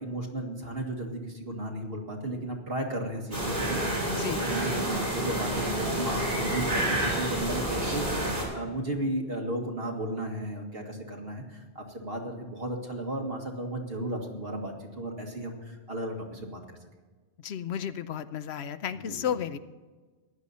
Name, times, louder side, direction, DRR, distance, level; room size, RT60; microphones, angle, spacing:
voice 1, 0.0-4.1 4.4-16.6 18.9-19.2, right 1 dB, 65° right, 1 dB, 2.1 m, -34 dB
sound 1, 3.3-8.4, right 1 dB, 40° right, 3.9 m, -29 dB
voice 2, 4.0-4.4 4.7-4.8 17.4-19.6, left 9 dB, 80° left, 12 dB, 0.9 m, -33 dB
15.5 x 11.0 x 4.2 m, 1.3 s
omnidirectional pair, 1.1 m